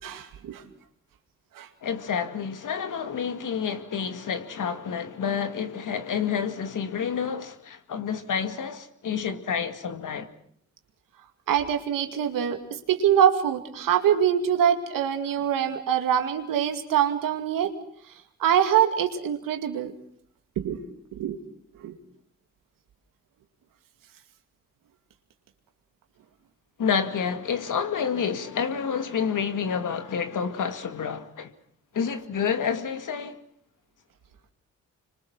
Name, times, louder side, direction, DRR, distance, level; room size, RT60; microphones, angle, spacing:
voice 1, 0.0-0.6 1.5-1.7 11.5-17.7 18.4-19.9 20.6-20.8 21.1-21.4 21.8-22.0, right 9 dB, 85° right, 2.4 m, -24 dB
voice 2, 1.8-10.3 26.8-31.5 31.9-33.4, left 7 dB, 70° left, 2.3 m, -29 dB
26.5 x 24.5 x 6.2 m
supercardioid pair, 55°, 32 cm